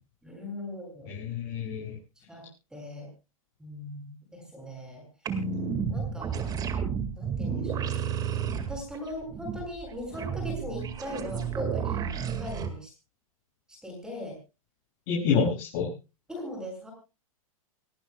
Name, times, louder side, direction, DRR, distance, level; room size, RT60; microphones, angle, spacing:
voice 1, 0.2-1.1 2.3-2.4 2.7-3.1 3.6-5.0 5.9-6.6 7.1-8.0 8.7-12.0 12.4-12.9 13.7-14.4 16.3-16.9, left 1 dB, 5° right, 2 dB, 7.7 m, -39 dB
voice 2, 1.1-2.0 15.1-15.9, left 6 dB, 40° left, -4 dB, 7.3 m, -27 dB
sound 1, 5.2-12.7, right 7 dB, 20° right, 2.1 m, -31 dB
29.5 x 11.5 x 2.4 m, 0.31 s
hypercardioid pair, 140°, 18 cm